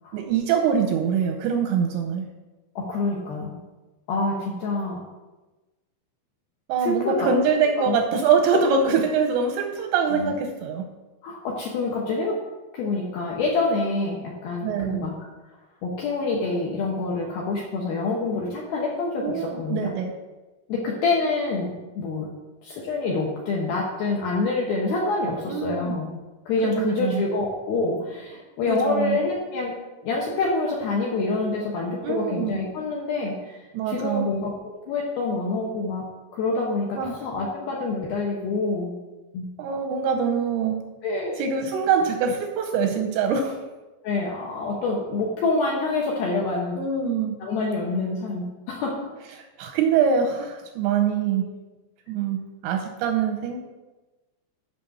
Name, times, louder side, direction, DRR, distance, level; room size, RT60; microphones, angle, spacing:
voice 1, 0.1-2.3 6.7-10.8 14.6-15.1 19.2-20.1 25.5-25.9 26.6-27.2 28.6-29.2 32.0-32.6 33.7-34.3 37.0-37.1 39.6-40.8 41.4-43.6 46.8-47.4 49.4-51.5 52.1-53.6, right 6 dB, 85° right, 4 dB, 2.7 m, -24 dB
voice 2, 2.8-3.6 4.1-5.0 6.8-7.3 7.8-8.0 10.1-10.3 11.2-12.4 12.7-15.3 15.8-19.9 20.7-22.3 22.6-26.1 26.5-29.7 30.0-33.6 33.9-36.0 36.3-39.0 39.3-39.5 41.0-41.4 44.0-46.8 47.4-49.1, left 3 dB, 75° left, -2 dB, 2.3 m, -26 dB
7.7 x 5.9 x 6.8 m, 1.1 s
omnidirectional pair, 5.7 m